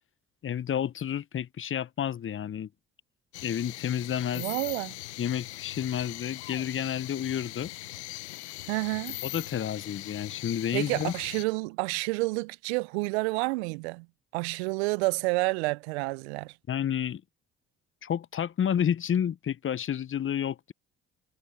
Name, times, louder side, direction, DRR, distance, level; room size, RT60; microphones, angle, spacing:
voice 1, 0.4-2.7 3.4-4.4 5.2-7.7 9.2-11.1 16.7-17.2 18.0-20.7, left 9 dB, 40° left, 0.8 m, -30 dB
sound 1, 3.3-11.4, left 18 dB, 90° left, 0.6 m, -40 dB
voice 2, 4.3-4.9 8.7-9.2 10.7-14.1 14.3-16.5, right 26 dB, 85° right, 0.5 m, -29 dB
hypercardioid pair, 45°, 32 cm